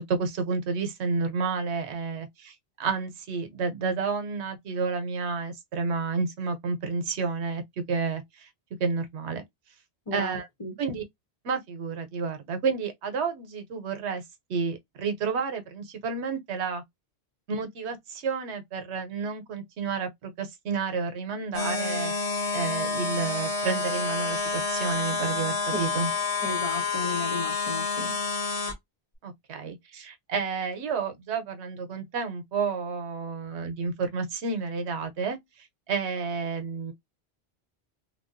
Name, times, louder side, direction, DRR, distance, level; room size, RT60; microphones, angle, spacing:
voice 1, 0.0-8.5 8.8-9.4 10.1-10.5 10.8-11.0 11.4-14.2 14.5-16.8 17.5-22.1 22.5-26.1 29.2-36.9, right 5 dB, 90° right, 1.0 m, -30 dB
voice 2, 10.1-10.7 25.7-26.0 26.4-28.1, left 2 dB, 35° left, 0.8 m, -34 dB
sound 1, 21.5-28.7, left 4 dB, 85° left, 1.5 m, -29 dB
3.3 x 2.3 x 2.5 m
omnidirectional pair, 1.1 m